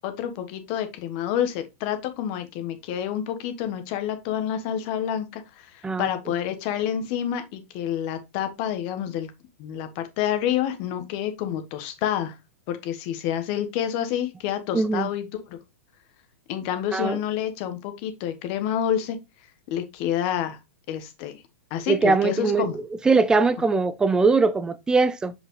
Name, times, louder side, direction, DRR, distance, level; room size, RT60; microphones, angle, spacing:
voice 1, 0.0-9.3 9.6-12.3 12.7-15.6 16.5-19.2 19.7-20.6 20.9-21.4 21.7-22.8, left 10 dB, 45° left, 1.2 m, -28 dB
voice 2, 14.7-15.1 16.9-17.2 21.9-25.3, right 4 dB, 10° right, 0.4 m, -21 dB
6.1 x 5.2 x 3.1 m
hypercardioid pair, 125°, 8 cm